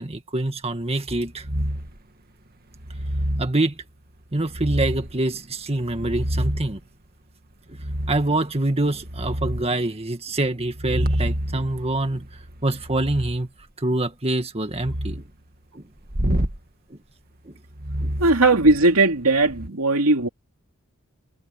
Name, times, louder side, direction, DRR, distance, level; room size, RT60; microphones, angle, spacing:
voice 1, 0.0-1.5 3.4-3.8 4.3-6.8 7.7-7.8 8.1-12.3 12.6-13.5 13.8-15.2 15.7-15.9 16.3-16.4 16.9-17.0 17.5-17.6 18.0-18.2, right 2 dB, 30° right, 1.9 m, -25 dB
sound 1, 1.4-2.0 2.8-3.5 4.5-5.2 5.8-6.8 7.7-8.3 8.8-9.7 10.7-13.4 14.7-15.2 16.1-16.6 17.7-19.0 19.4-19.7, equal, 45° right, 1.9 m, -28 dB
voice 2, 18.2-20.3, right 2 dB, 85° right, 2.7 m, -18 dB
head